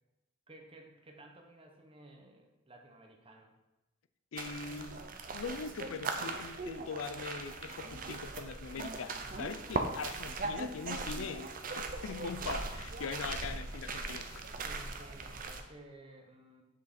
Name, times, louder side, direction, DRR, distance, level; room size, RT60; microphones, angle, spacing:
voice 1, 0.5-3.5 14.5-16.6, right 1 dB, 25° right, 1.1 m, -55 dB
voice 2, 4.3-5.0 5.3-14.5, left 5 dB, 85° left, 0.5 m, -42 dB
sound 1, 4.4-15.6, right 3 dB, 40° right, 0.7 m, -39 dB
7.5 x 6.3 x 4.3 m
head